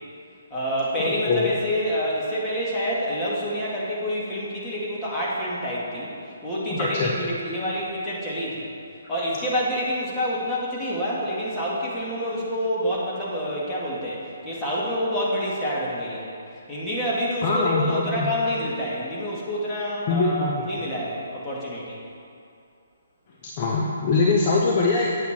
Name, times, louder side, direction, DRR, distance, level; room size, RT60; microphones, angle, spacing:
voice 1, 0.5-6.1 6.4-8.7 9.1-16.3 16.7-22.0, equal, 10° left, -7 dB, 2.4 m, -27 dB
voice 2, 1.1-1.5 6.7-7.1 17.4-18.3 20.1-20.8 23.4-25.2, left 3 dB, 35° left, -2 dB, 0.9 m, -23 dB
9.5 x 8.2 x 4.5 m, 2.5 s
figure-of-eight pair, 135°, 0 cm